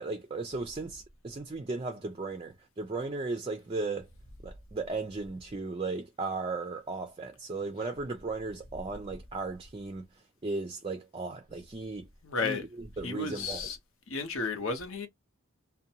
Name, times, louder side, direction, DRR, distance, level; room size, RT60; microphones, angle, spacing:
voice 1, 0.0-4.1 4.4-10.1 10.4-12.1 12.4-13.7, right 3 dB, 25° right, 0.4 m, -36 dB
voice 2, 12.2-12.6 13.0-13.8 14.1-15.1, left 4 dB, 75° left, 0.8 m, -33 dB
2.6 x 2.1 x 2.7 m
head